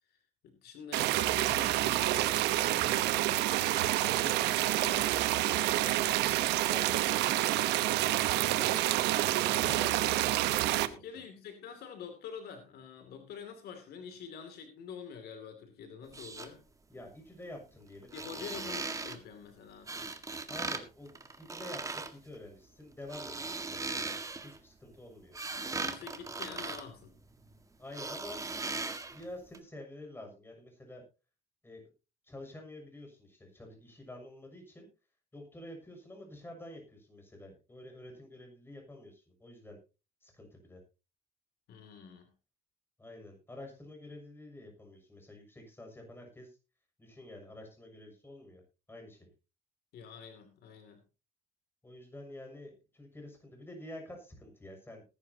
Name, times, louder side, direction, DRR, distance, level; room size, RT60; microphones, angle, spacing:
voice 1, 0.4-3.4 10.9-16.6 18.1-20.1 25.8-27.2 41.7-42.3 49.9-51.0, left 6 dB, 70° left, 7 dB, 2.6 m, -47 dB
sound 1, 0.9-10.9, right 15 dB, 90° right, 1.0 m, -28 dB
voice 2, 4.0-5.8 6.1-9.1 9.5-11.2 16.9-18.7 20.5-24.1 24.4-25.3 27.8-28.4 29.1-31.0 31.6-31.9 32.2-34.9 35.3-39.8 40.2-40.8 43.0-46.6 47.0-48.6 48.9-49.3 51.8-55.0, left 1 dB, 15° left, 3 dB, 6.6 m, -49 dB
sound 2, 16.0-16.5 18.0-19.2 19.9-20.8 21.1-22.1 22.9-24.6 25.1-27.5 27.9-29.2 29.5-29.6, right 3 dB, 20° right, 1.7 m, -38 dB
19.5 x 11.0 x 2.8 m, 0.32 s
cardioid pair, 110°, 17 cm